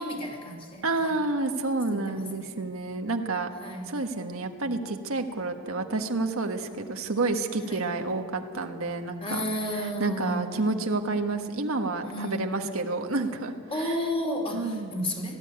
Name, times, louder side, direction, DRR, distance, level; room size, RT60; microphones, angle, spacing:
voice 1, 0.0-1.2 1.9-2.6 3.6-4.0 7.6-7.8 9.2-10.6 12.0-12.5 13.7-15.4, equal, 25° left, 2 dB, 2.6 m, -32 dB
voice 2, 0.8-3.5 3.9-9.4 9.8-13.5 13.8-14.0 14.5-14.9, right 3 dB, 80° right, 5 dB, 1.5 m, -29 dB
18.5 x 15.0 x 9.4 m, 2.1 s
head